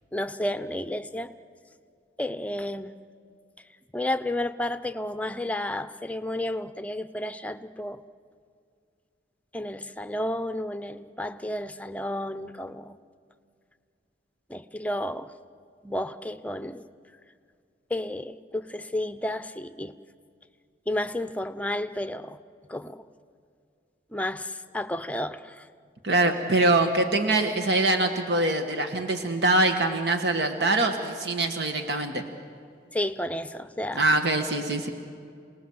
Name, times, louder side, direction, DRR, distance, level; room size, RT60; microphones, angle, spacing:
voice 1, 0.1-1.3 2.2-2.9 3.9-8.0 9.5-13.0 14.5-15.3 15.8-16.8 17.9-19.9 20.9-22.4 22.7-23.0 24.1-25.7 32.9-34.1, left 1 dB, 10° left, 11 dB, 0.6 m, -31 dB
voice 2, 26.0-32.2 33.9-34.9, right 2 dB, 70° right, 6 dB, 1.5 m, -24 dB
27.5 x 19.0 x 7.9 m, 2.3 s
head